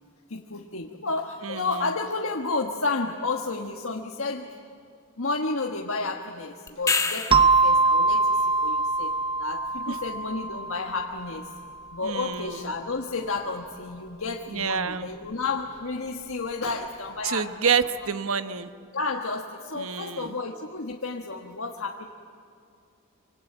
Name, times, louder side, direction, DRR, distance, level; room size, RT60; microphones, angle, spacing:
voice 1, 0.3-4.5 5.2-9.1 9.4-11.5 11.9-17.7 18.9-22.1, left 3 dB, 70° left, 1 dB, 1.5 m, -31 dB
voice 2, 1.4-1.9 9.9-10.0 12.0-12.7 14.5-15.1 17.2-18.7 19.7-20.4, right 6 dB, 75° right, 10 dB, 1.1 m, -28 dB
sound 1, 6.7-7.7 12.3-12.4, left 4 dB, 15° left, 1.3 m, -26 dB
sound 2, 7.3-11.7, right 3 dB, 25° right, 0.7 m, -23 dB
26.0 x 25.5 x 8.9 m, 2.4 s
head